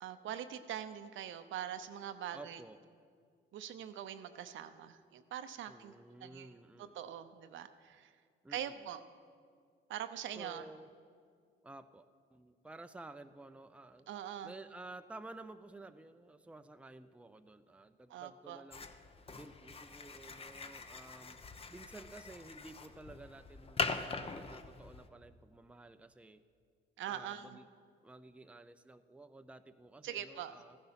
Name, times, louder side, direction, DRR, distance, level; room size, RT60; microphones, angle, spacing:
voice 1, 0.0-2.6 3.5-5.9 6.2-6.5 6.8-8.1 8.5-9.0 9.9-10.6 14.1-14.5 18.1-18.6 27.0-27.6 30.0-30.6, right 10 dB, 75° right, 10 dB, 0.7 m, -43 dB
voice 2, 2.3-2.8 5.7-7.0 8.4-8.9 10.4-10.9 11.6-14.1 14.4-18.9 19.3-21.4 21.7-26.4 27.0-27.7 28.0-30.8, right 2 dB, 5° right, 9 dB, 0.5 m, -53 dB
sound 1, 18.7-25.1, left 4 dB, 30° left, 0.8 m, -42 dB
15.0 x 10.5 x 5.8 m, 2.1 s
cardioid pair, 90°, 20 cm